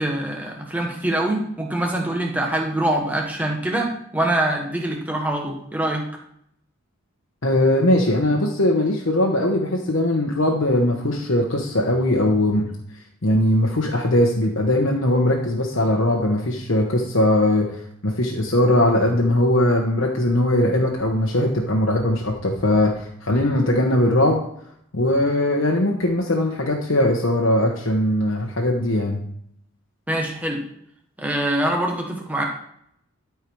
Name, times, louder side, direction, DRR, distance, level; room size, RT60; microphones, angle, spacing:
voice 1, 0.0-6.0 30.1-30.6 31.2-32.4, right 1 dB, 5° right, 0 dB, 1.4 m, -24 dB
voice 2, 7.4-12.7 13.2-24.4 24.9-29.2, left 1 dB, 65° left, -1 dB, 1.1 m, -20 dB
12.5 x 4.6 x 4.7 m, 0.70 s
head